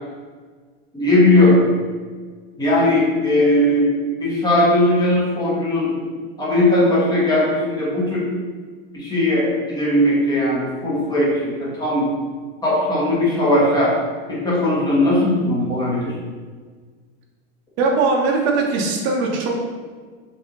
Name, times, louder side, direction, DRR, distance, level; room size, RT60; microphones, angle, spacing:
voice 1, 0.9-1.6 2.6-5.9 6.4-8.3 8.9-12.1 12.6-13.9 14.3-16.2, left 1 dB, 10° left, -7 dB, 1.1 m, -18 dB
voice 2, 17.8-19.5, right 3 dB, 35° right, 0 dB, 0.6 m, -20 dB
3.3 x 2.7 x 3.6 m, 1.5 s
supercardioid pair, 140°, 31 cm